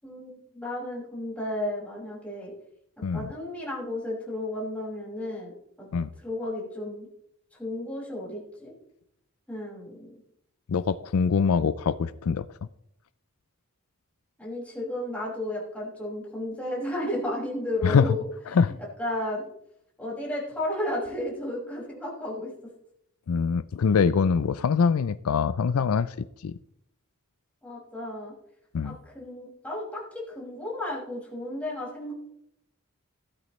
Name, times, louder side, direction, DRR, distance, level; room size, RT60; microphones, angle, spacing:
voice 1, 0.0-2.5 3.1-5.5 5.8-5.9 6.2-7.1 7.6-8.7 9.5-10.1 14.4-18.2 19.0-19.4 20.0-22.5 27.6-28.3 28.8-32.1, left 1 dB, 5° left, -6 dB, 5.9 m, -33 dB
voice 2, 10.7-12.4 17.8-18.1 18.5-18.7 23.3-26.1 26.4-26.6 28.7-29.0, left 6 dB, 75° left, 15 dB, 0.4 m, -24 dB
15.5 x 12.5 x 3.2 m, 0.75 s
head